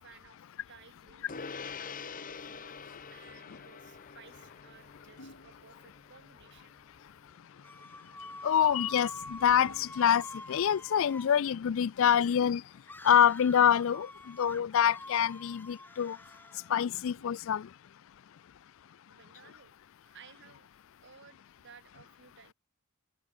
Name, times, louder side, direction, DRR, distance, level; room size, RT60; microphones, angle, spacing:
voice 1, 0.0-2.7 3.1-6.7 8.2-8.4 19.1-19.7 20.0-22.5, right 6 dB, 55° right, 1.8 m, -58 dB
Gong, 1.3-11.0, left 5 dB, 40° left, 1.1 m, -48 dB
sound 1, 4.0-6.5 8.1-11.3 13.0-14.2 16.2-18.0 19.2-19.4, left 1 dB, 85° left, 6.5 m, -58 dB
sound 2, 7.6-11.4 12.8-16.7, left 2 dB, 10° left, 1.3 m, -46 dB
voice 2, 8.4-12.6 13.0-16.2 16.7-17.7, left 9 dB, 60° left, 0.4 m, -26 dB
head